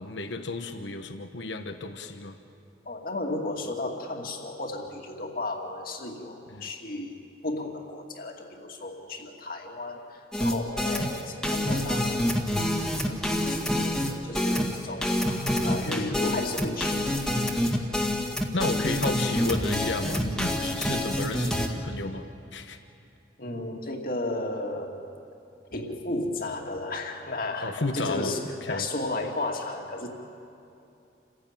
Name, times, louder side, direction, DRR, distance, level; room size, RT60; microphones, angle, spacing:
voice 1, 0.0-2.4 6.5-6.7 15.2-16.5 18.5-22.8 27.6-28.9, left 2 dB, 75° left, 7 dB, 1.2 m, -33 dB
voice 2, 2.9-7.2 7.4-15.2 15.6-17.1 23.4-25.0 25.7-30.1, left 2 dB, 50° left, 2 dB, 2.4 m, -34 dB
sound 1, 10.3-21.7, left 1 dB, 5° left, 1.9 m, -27 dB
28.5 x 16.0 x 9.0 m, 2.7 s
head